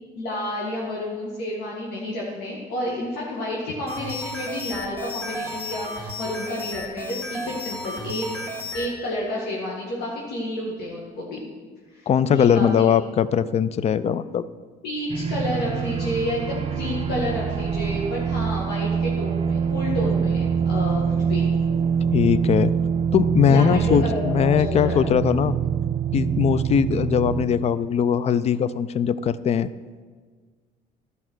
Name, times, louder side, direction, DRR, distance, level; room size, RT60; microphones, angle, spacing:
voice 1, 0.2-8.4 8.7-11.4 11.9-13.0 14.8-21.5 23.5-25.1 25.6-25.7, left 1 dB, 80° left, -4 dB, 2.0 m, -30 dB
sound 1, 3.9-8.9, left 1 dB, 15° left, 2.7 m, -33 dB
voice 2, 12.1-14.5 22.1-22.7 23.1-25.6 26.1-29.7, left 8 dB, 40° left, 16 dB, 0.4 m, -20 dB
sound 2, 15.1-27.5, right 7 dB, 35° right, 0.7 m, -24 dB
13.0 x 5.5 x 6.2 m, 1.5 s
cardioid pair, 110°, 17 cm